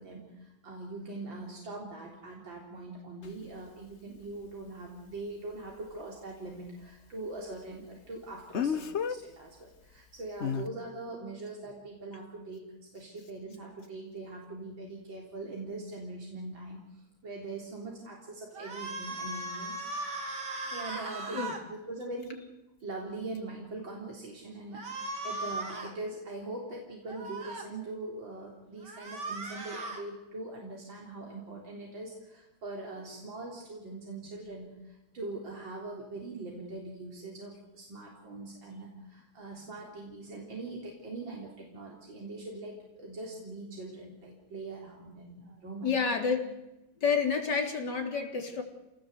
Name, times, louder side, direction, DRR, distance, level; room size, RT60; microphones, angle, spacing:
voice 1, 0.0-12.7 12.9-19.8 20.6-22.4 22.8-45.9, right 2 dB, 85° right, -1 dB, 4.4 m, -42 dB
Speech, 3.2-3.3 8.5-9.2 10.4-10.7, left 7 dB, 45° left, 1.1 m, -30 dB
sound 1, 18.5-21.6 24.7-25.9 27.1-27.7 28.8-30.0, right 2 dB, 65° right, 3.6 m, -38 dB
voice 2, 45.8-46.5 47.0-48.6, left 5 dB, 60° left, 3 dB, 4.1 m, -29 dB
28.5 x 19.0 x 8.2 m, 0.97 s
omnidirectional pair, 2.0 m